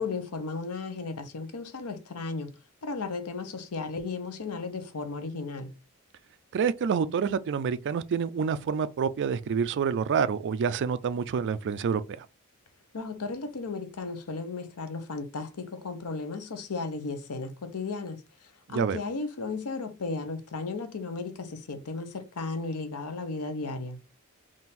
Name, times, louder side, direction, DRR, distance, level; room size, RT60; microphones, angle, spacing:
voice 1, 0.0-2.6 2.8-5.7 12.9-18.2 18.7-24.0, left 4 dB, 85° left, 0.8 m, -35 dB
voice 2, 6.5-12.3 18.7-19.0, right 6 dB, 55° right, 0.4 m, -28 dB
3.7 x 2.5 x 4.1 m
head